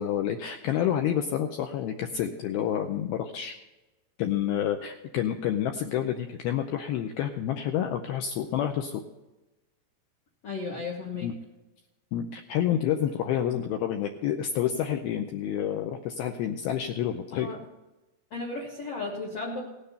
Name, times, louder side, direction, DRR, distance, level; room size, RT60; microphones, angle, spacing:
voice 1, 0.0-3.6 4.2-9.0 11.2-11.4 12.1-17.5, left 10 dB, 85° left, 5 dB, 2.2 m, -29 dB
voice 2, 10.4-11.3 17.4-17.6 18.3-19.6, left 3 dB, 65° left, -3 dB, 1.5 m, -34 dB
17.5 x 6.7 x 5.6 m, 1.0 s
omnidirectional pair, 5.1 m